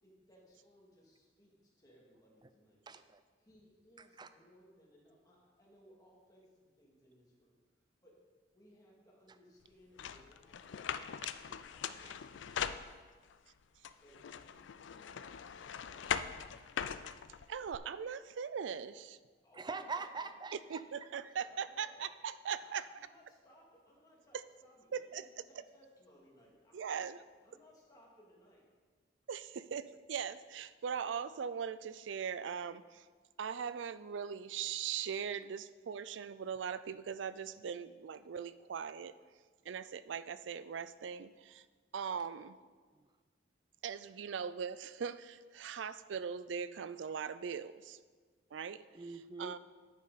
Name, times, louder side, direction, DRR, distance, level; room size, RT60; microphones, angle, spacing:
voice 1, 0.0-2.8 3.4-7.5 8.0-8.2 8.5-13.4 13.9-16.4 19.4-20.4 21.4-22.0 22.4-27.1 27.4-28.7, equal, 20° left, -4 dB, 2.3 m, -64 dB
voice 2, 2.9-3.2 4.0-4.3 12.0-12.1 19.6-20.8 42.9-43.1 48.9-49.6, right 4 dB, 25° right, 11 dB, 0.4 m, -44 dB
sound 1, 10.0-13.3 13.8-17.8, left 8 dB, 90° left, 0.4 m, -41 dB
voice 3, 17.5-19.2 20.7-22.9 24.9-25.2 26.7-27.2 29.3-33.1 33.4-39.1 39.7-41.6 41.9-42.6 43.8-48.0 48.5-48.8 49.4-49.6, right 7 dB, 90° right, 15 dB, 0.4 m, -40 dB
10.0 x 8.6 x 4.1 m, 1.5 s
head